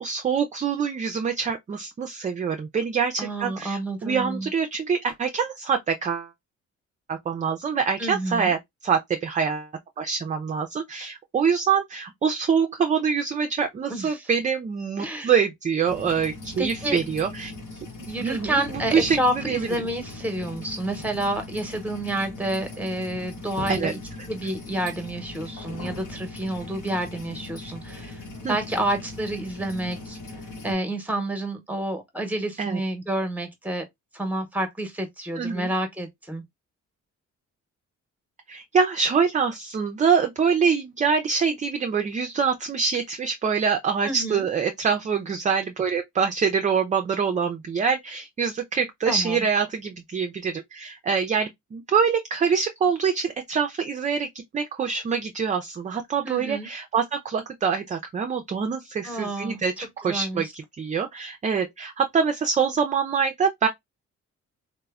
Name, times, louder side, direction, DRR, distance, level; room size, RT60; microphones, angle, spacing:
voice 1, 0.0-6.3 7.1-9.7 10.0-17.5 18.2-19.7 23.7-23.9 28.4-28.8 32.6-32.8 35.4-35.7 38.5-54.3 54.5-63.7, right 6 dB, 25° right, 0.3 m, -25 dB
voice 2, 3.2-4.5 8.0-8.5 13.9-14.3 15.0-15.3 16.6-17.0 18.1-24.0 24.3-28.2 28.5-30.2 30.6-33.8 34.1-36.4 44.0-44.4 49.1-49.4 56.2-56.7 59.0-59.6 60.0-60.4, right 1 dB, 5° right, 0.8 m, -29 dB
sound 1, 15.9-30.7, left 2 dB, 80° left, 0.9 m, -39 dB
3.0 x 2.1 x 2.3 m
cardioid pair, 90°, 30 cm